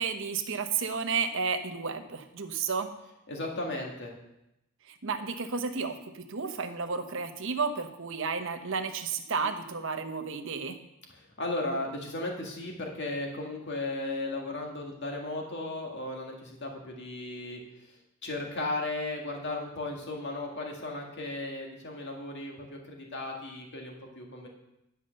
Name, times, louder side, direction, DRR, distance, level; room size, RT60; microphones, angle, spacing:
voice 1, 0.0-2.9 5.0-10.8, right 5 dB, 65° right, 6 dB, 0.9 m, -32 dB
voice 2, 3.3-4.1 11.1-24.5, left 2 dB, 55° left, 0 dB, 1.9 m, -36 dB
10.5 x 5.6 x 6.4 m, 0.85 s
head